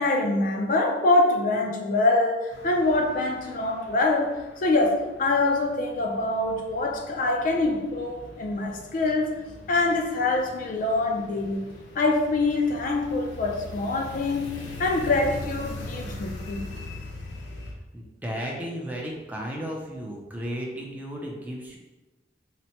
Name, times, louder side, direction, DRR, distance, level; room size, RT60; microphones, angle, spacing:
voice 1, 0.0-9.4 9.7-11.7 12.0-16.7, left 2 dB, 50° left, 2 dB, 0.4 m, -25 dB
sound 1, 2.5-17.7, left 2 dB, 85° left, 0.6 m, -42 dB
voice 2, 17.9-21.8, equal, 10° right, -2 dB, 0.5 m, -34 dB
4.2 x 2.1 x 2.8 m, 1.1 s
head